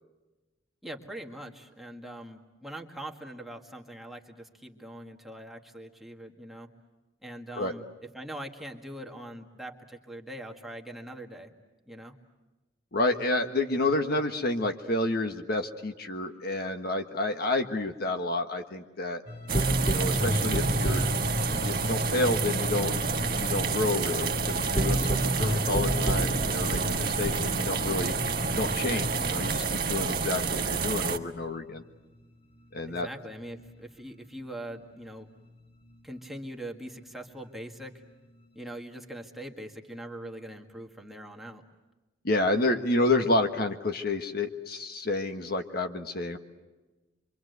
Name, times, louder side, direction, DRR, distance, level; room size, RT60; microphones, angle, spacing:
voice 1, 0.8-6.7 7.2-7.8 8.1-11.5 11.9-12.1 29.1-29.5 32.8-35.3 36.0-37.9 38.5-41.6, right 1 dB, ahead, 1 dB, 1.9 m, -42 dB
voice 2, 12.9-19.2 19.8-21.1 21.6-23.0 23.4-28.1 28.5-31.8 32.7-33.1 42.2-46.4, left 2 dB, 55° left, 6 dB, 1.5 m, -29 dB
sound 1, 19.3-32.3 32.6-34.5 34.8-36.5 36.9-38.7, equal, 30° left, 3.5 m, -33 dB
sound 2, 19.5-31.2, right 5 dB, 50° right, 1.5 m, -29 dB
26.0 x 25.0 x 8.1 m, 1.2 s
head